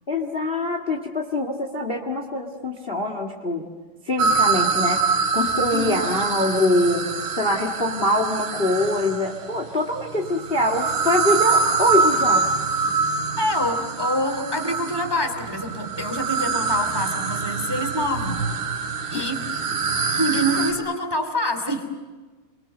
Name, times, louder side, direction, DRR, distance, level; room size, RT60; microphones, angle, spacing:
voice 1, 0.1-3.6 4.1-5.0 5.3-7.0 7.3-12.5, left 1 dB, 40° left, 3 dB, 0.8 m, -24 dB
sound 1, 4.2-9.4 10.2-20.7, right 4 dB, 75° right, 4.9 m, -24 dB
voice 2, 13.4-18.4 19.1-19.4 20.1-21.9, equal, 10° right, 6 dB, 1.6 m, -26 dB
30.0 x 23.5 x 6.8 m, 1.3 s
omnidirectional pair, 4.6 m